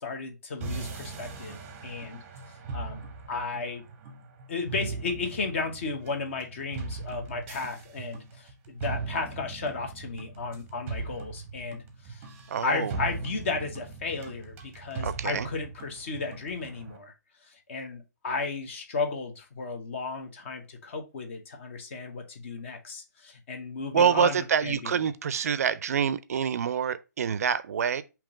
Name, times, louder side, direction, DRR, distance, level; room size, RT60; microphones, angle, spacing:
voice 1, 0.0-1.6 1.8-3.0 3.3-3.8 4.5-12.3 12.6-17.1 17.4-25.1, left 4 dB, 40° left, 1.0 m, -34 dB
sound 1, 0.6-17.0, right 4 dB, 20° right, 0.7 m, -40 dB
voice 2, 12.5-12.9 15.0-15.5 23.9-28.0, right 7 dB, 55° right, 0.4 m, -26 dB
3.7 x 2.9 x 4.7 m
hypercardioid pair, 160°, 10 cm